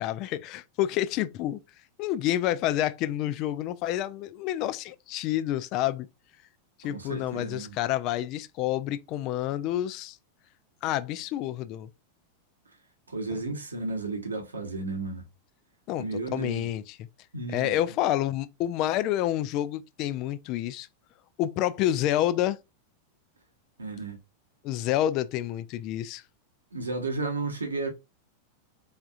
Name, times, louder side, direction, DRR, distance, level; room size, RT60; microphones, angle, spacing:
voice 1, 0.0-1.6 2.0-6.1 6.8-10.2 10.8-11.9 15.9-17.0 17.5-20.9 21.4-22.6 24.6-26.2, left 13 dB, 40° left, 0.4 m, -28 dB
voice 2, 6.9-7.7 13.1-15.2 16.0-16.6 17.3-17.7 23.8-24.2 26.7-27.9, right 3 dB, 75° right, 1.1 m, -33 dB
4.4 x 3.5 x 2.4 m
figure-of-eight pair, 90°, 0 cm